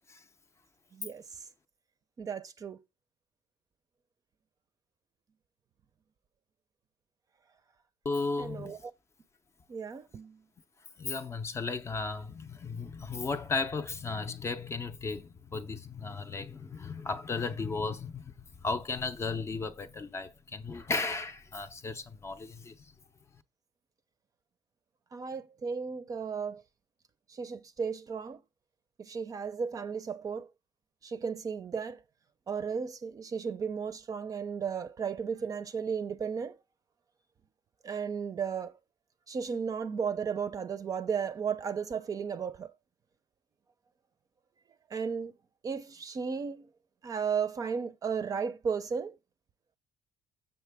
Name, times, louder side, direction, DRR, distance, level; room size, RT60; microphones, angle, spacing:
voice 1, 0.9-1.2 2.2-2.8 8.4-8.8 9.7-10.4 25.1-26.6 27.3-28.4 29.0-30.5 31.0-32.0 32.5-36.6 37.8-38.7 39.3-42.7 44.9-45.3 45.6-46.7 47.0-49.2, right 6 dB, 30° right, 0.6 m, -34 dB
voice 2, 8.0-8.8 11.0-22.9, left 4 dB, 20° left, 0.6 m, -35 dB
7.4 x 6.6 x 3.5 m
cardioid pair, 155°, 12 cm